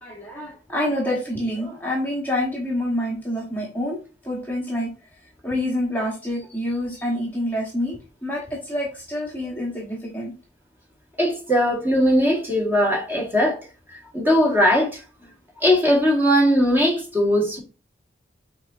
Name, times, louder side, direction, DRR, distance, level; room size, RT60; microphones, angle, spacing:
voice 1, 0.0-4.0 4.2-4.9 5.4-10.3, left 1 dB, 10° left, 1.0 m, -27 dB
voice 2, 11.2-13.6 13.9-15.0 15.6-17.6, equal, 10° right, 1.4 m, -19 dB
5.4 x 3.8 x 2.4 m
head